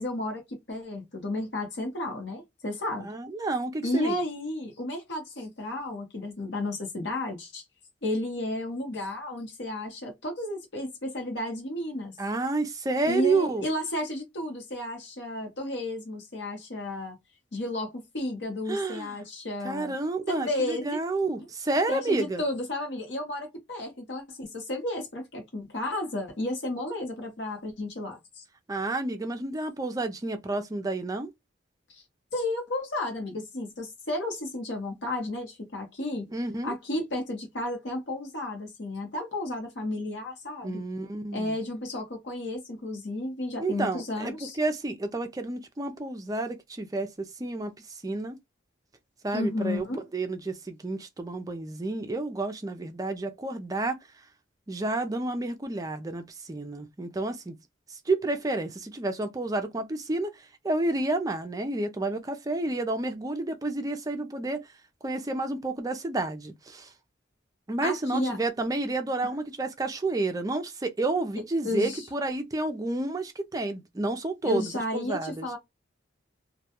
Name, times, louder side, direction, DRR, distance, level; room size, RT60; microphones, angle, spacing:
voice 1, 0.0-3.1 3.8-7.6 8.0-12.2 13.0-17.2 17.5-19.9 20.3-21.0 21.9-28.4 31.9-32.0 32.3-36.3 36.6-40.8 41.3-44.6 49.3-50.0 67.8-68.4 71.6-72.0 74.4-75.6, left 1 dB, 60° left, 0.9 m, -32 dB
voice 2, 3.0-4.2 12.2-13.7 18.7-19.2 19.6-22.4 28.7-31.3 36.3-36.7 40.6-41.6 43.6-48.4 49.2-54.0 54.7-57.6 57.9-64.7 65.0-66.9 67.7-75.5, right 2 dB, 20° right, 0.4 m, -30 dB
2.2 x 2.2 x 2.8 m
head